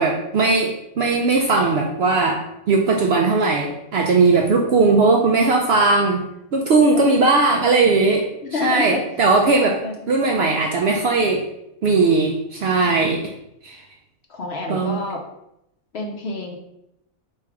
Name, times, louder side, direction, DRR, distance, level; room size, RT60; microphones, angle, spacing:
voice 1, 0.0-6.3 6.5-9.8 10.1-11.5 11.8-13.2 13.6-13.8 14.7-15.0, right 3 dB, 65° right, 0 dB, 0.6 m, -18 dB
voice 2, 6.9-7.3 8.4-9.0 9.6-9.9 14.3-15.2 15.9-16.6, left 3 dB, 60° left, 0 dB, 0.8 m, -28 dB
3.4 x 3.3 x 4.7 m, 0.83 s
omnidirectional pair, 1.5 m